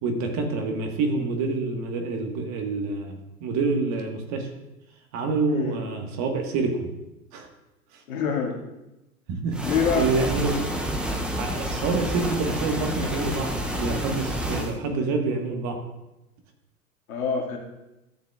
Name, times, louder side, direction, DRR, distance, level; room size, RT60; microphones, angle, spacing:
voice 1, 0.0-4.5 5.1-6.9 7.3-7.5 9.4-9.6 10.0-10.7 11.4-15.8, right 3 dB, 40° right, 3 dB, 1.5 m, -27 dB
voice 2, 8.1-8.6 9.6-10.1 17.1-17.6, left 6 dB, 70° left, 0 dB, 2.0 m, -25 dB
sound 1, 9.5-14.7, equal, ahead, 0.5 m, -29 dB
13.0 x 7.4 x 2.4 m, 0.95 s
hypercardioid pair, 100°, 44 cm